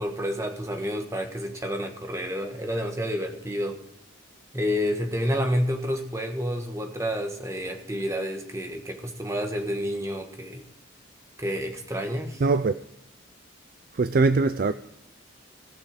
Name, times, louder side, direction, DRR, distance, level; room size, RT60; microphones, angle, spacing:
voice 1, 0.0-3.8 4.5-10.6 11.4-12.4, equal, 15° right, 1.4 m, -29 dB
voice 2, 12.4-12.7 13.9-14.7, right 3 dB, 45° right, 0.4 m, -21 dB
18.0 x 6.6 x 4.9 m
head